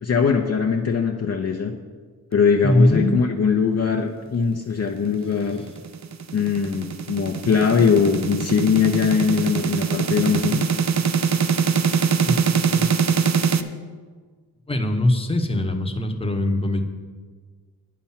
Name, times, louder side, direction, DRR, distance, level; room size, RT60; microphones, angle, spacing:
voice 1, 0.0-1.7 2.3-5.7 6.3-10.6, left 6 dB, 40° left, 2 dB, 0.7 m, -21 dB
voice 2, 2.6-3.2 12.2-12.9 14.7-16.8, left 1 dB, 15° left, 4 dB, 1.0 m, -21 dB
sound 1, 5.5-13.6, right 6 dB, 45° right, 0.6 m, -23 dB
9.5 x 5.8 x 7.3 m, 1.5 s
cardioid pair, 95°, 38 cm